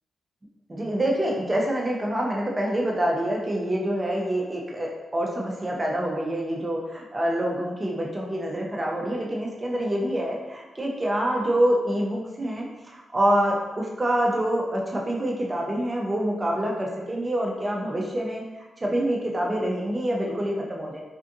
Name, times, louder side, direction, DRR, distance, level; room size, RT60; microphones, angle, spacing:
voice 1, 0.7-18.4 18.8-21.0, right 1 dB, 25° right, -2 dB, 0.7 m, -26 dB
3.5 x 2.4 x 2.7 m, 1.1 s
cardioid pair, 65°, 0 cm